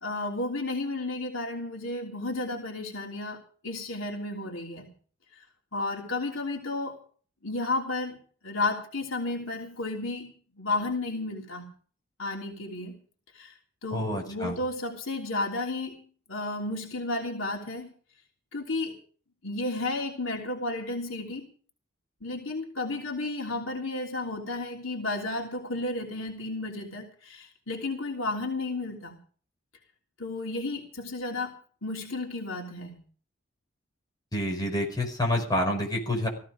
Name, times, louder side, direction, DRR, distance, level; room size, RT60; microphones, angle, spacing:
voice 1, 0.0-4.9 5.4-5.5 5.7-7.0 7.4-8.2 8.4-11.7 12.2-13.0 13.3-13.6 13.8-16.0 16.3-17.9 18.5-19.0 19.4-21.5 22.2-29.2 30.2-31.5 31.8-33.0, left 2 dB, 75° left, 0 dB, 3.2 m, -32 dB
voice 2, 13.9-14.6 34.3-36.3, left 1 dB, 20° left, 1 dB, 4.9 m, -28 dB
16.5 x 15.0 x 5.1 m, 0.44 s
head